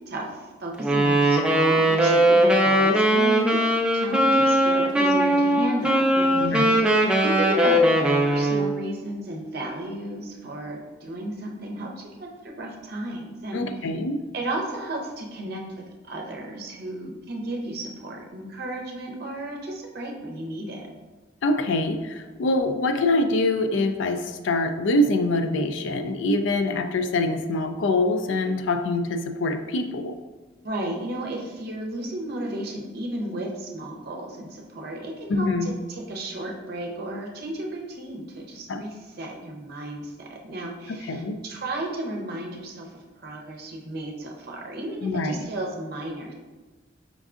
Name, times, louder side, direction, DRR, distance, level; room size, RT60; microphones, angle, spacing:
voice 1, 0.1-3.6 3.9-6.9 7.2-13.9 14.3-15.6 16.0-20.9 30.6-46.3, right 1 dB, 55° right, 0 dB, 0.7 m, -33 dB
Wind instrument woodwind instrument, 0.8-8.8, right 1 dB, 5° right, 0.3 m, -20 dB
voice 2, 6.4-6.8 13.5-14.2 21.4-30.1 35.3-35.7 38.7-38.8 40.9-41.4 45.0-45.4, left 2 dB, 75° left, 8 dB, 0.4 m, -24 dB
5.1 x 3.6 x 2.4 m, 1.2 s
head